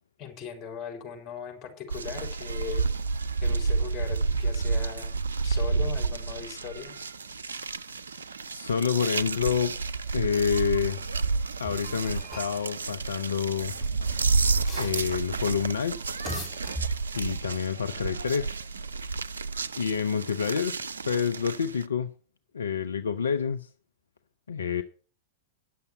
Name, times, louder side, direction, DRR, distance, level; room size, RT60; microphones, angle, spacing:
voice 1, 0.2-2.9 3.4-7.0, left 7 dB, 35° left, 4.1 m, -39 dB
sound 1, 1.9-21.9, right 4 dB, 70° right, 0.5 m, -30 dB
voice 2, 8.5-9.8 10.1-11.0 11.6-13.7 14.7-16.0 17.1-18.5 19.8-20.8 21.1-22.1 22.5-23.7 24.5-24.8, left 7 dB, 70° left, 0.6 m, -28 dB
sound 2, 11.6-12.6 13.5-15.4 16.0-17.3, right 1 dB, 5° left, 3.7 m, -40 dB
10.5 x 6.9 x 7.6 m
figure-of-eight pair, 95°, 0 cm